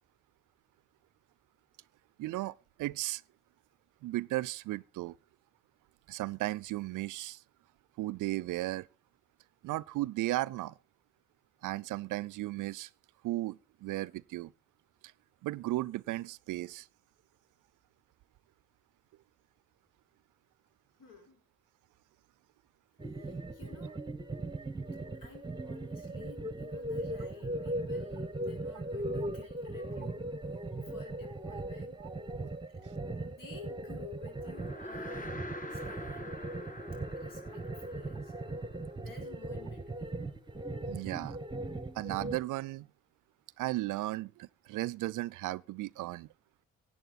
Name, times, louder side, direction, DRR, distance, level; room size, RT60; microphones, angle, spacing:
voice 1, 2.2-3.2 4.0-5.2 6.1-7.4 8.0-8.9 9.6-10.7 11.6-12.9 13.2-14.5 15.4-16.9 32.0-32.1 40.9-41.4 41.9-42.9 43.6-46.3, right 17 dB, 60° right, 0.5 m, -35 dB
voice 2, 21.0-21.4 23.2-24.0 25.1-30.3 30.8-32.0 33.1-35.4 35.7-36.4 37.1-38.6 38.9-40.3, left 5 dB, 65° left, 4.8 m, -53 dB
sound 1, 23.0-42.4, right 2 dB, 15° right, 1.2 m, -39 dB
sound 2, 34.3-39.8, left 1 dB, 25° left, 1.5 m, -45 dB
16.5 x 8.8 x 4.1 m
hypercardioid pair, 45°, 35 cm